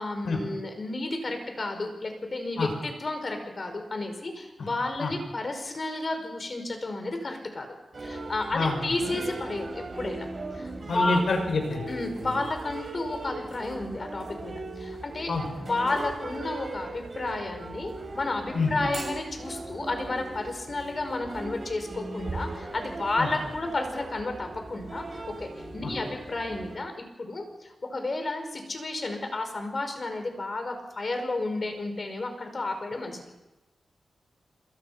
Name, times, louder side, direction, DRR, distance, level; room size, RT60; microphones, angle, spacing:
voice 1, 0.0-7.7 8.0-10.3 10.5-11.2 11.9-15.3 15.6-25.0 25.4-33.3, left 2 dB, 40° left, 6 dB, 5.2 m, -32 dB
sound 1, 7.9-26.8, right 2 dB, 45° right, 5.5 m, -39 dB
voice 2, 8.5-8.9 10.9-11.9 15.3-15.5 18.5-18.7 23.2-23.3 25.8-25.9, left 3 dB, 70° left, 4 dB, 6.2 m, -27 dB
27.0 x 23.5 x 5.8 m, 1.0 s
wide cardioid pair, 100°, 0 cm